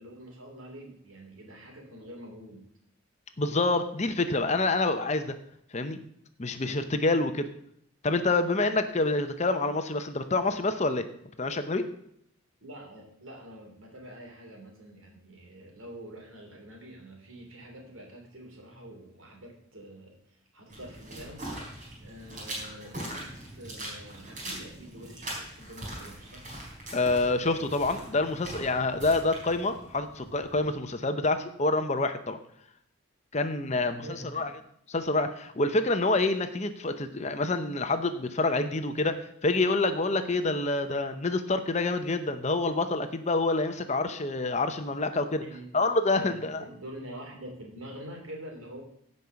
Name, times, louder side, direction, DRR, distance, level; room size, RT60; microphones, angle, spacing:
voice 1, 0.0-2.7 12.6-26.5 33.7-34.5 45.4-45.7 46.1-48.8, right 1 dB, 70° right, 1 dB, 3.2 m, -46 dB
voice 2, 3.4-5.3 5.7-6.0 6.4-7.5 8.0-11.1 11.4-11.9 26.9-32.4 33.3-34.5 34.9-45.4 45.7-46.6, left 2 dB, 30° left, 9 dB, 0.7 m, -27 dB
sound 1, 20.7-30.7, right 1 dB, 35° right, 4.2 m, -42 dB
16.0 x 5.4 x 5.8 m, 0.71 s
head